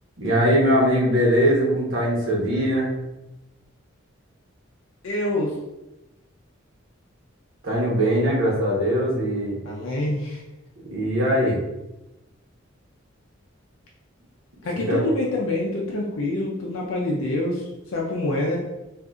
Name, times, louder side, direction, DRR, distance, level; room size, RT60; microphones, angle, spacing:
voice 1, 0.2-2.9 7.6-9.6 10.9-11.6 14.9-15.0, equal, 75° right, -4 dB, 1.1 m, -21 dB
voice 2, 5.0-5.6 9.6-10.4 14.6-18.6, left 1 dB, 85° left, -2 dB, 0.5 m, -26 dB
3.7 x 2.5 x 2.4 m, 0.97 s
head